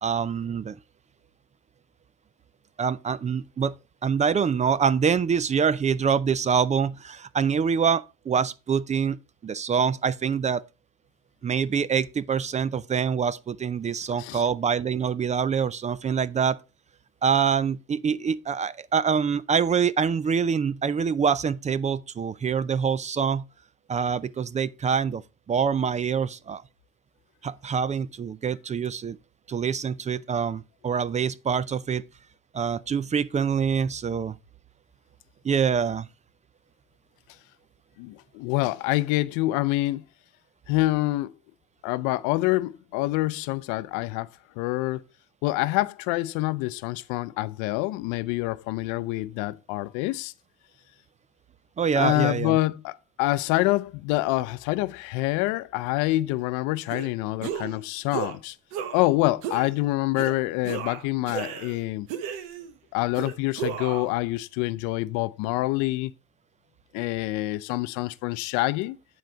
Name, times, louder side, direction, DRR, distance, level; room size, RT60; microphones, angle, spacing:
voice 1, 0.0-0.8 2.8-3.7 4.0-10.6 11.4-16.6 17.2-23.4 23.9-25.2 25.5-26.6 27.4-29.2 29.5-32.0 32.5-34.4 35.4-36.1 51.8-52.6, right 6 dB, 25° right, 0.4 m, -25 dB
voice 2, 38.0-40.0 40.7-41.3 41.8-44.3 44.6-45.0 45.4-50.3 51.9-58.6 58.9-62.1 62.9-66.1 66.9-69.0, left 18 dB, 85° left, 0.5 m, -26 dB
sound 1, 56.9-57.1 57.4-57.8 58.1-58.4 58.7-59.1 59.4-59.7 60.2-60.3 60.6-61.8 62.1-62.7 63.1-64.1, right 8 dB, 90° right, 1.0 m, -33 dB
9.3 x 4.0 x 4.5 m
supercardioid pair, 100°, 30 cm